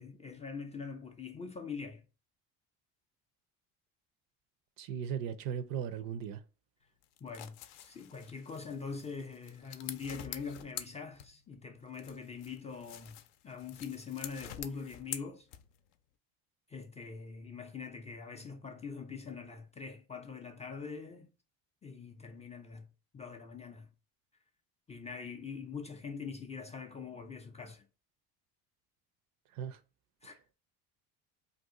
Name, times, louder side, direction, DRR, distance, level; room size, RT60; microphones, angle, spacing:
voice 1, 0.0-2.0 7.2-15.5 16.7-21.3 21.8-23.9 24.9-27.9 30.2-30.4, left 5 dB, 20° left, 0.3 m, -43 dB
voice 2, 4.8-6.4 29.5-29.8, right 8 dB, 60° right, 0.5 m, -37 dB
sound 1, 7.0-11.6 11.9-15.9, left 11 dB, 75° left, 0.5 m, -47 dB
2.6 x 2.4 x 3.6 m
supercardioid pair, 85°, 37 cm